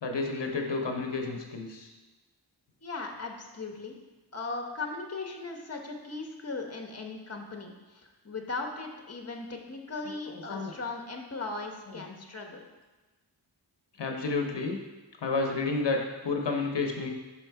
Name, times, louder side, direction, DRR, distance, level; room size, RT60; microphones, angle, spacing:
voice 1, 0.0-1.9 10.1-10.7 14.0-14.8 15.2-17.1, left 3 dB, 75° left, 2 dB, 0.8 m, -31 dB
voice 2, 2.8-4.0 4.3-12.7, left 3 dB, 35° left, 2 dB, 0.9 m, -38 dB
5.9 x 5.4 x 4.6 m, 1.2 s
wide cardioid pair, 75°, 43 cm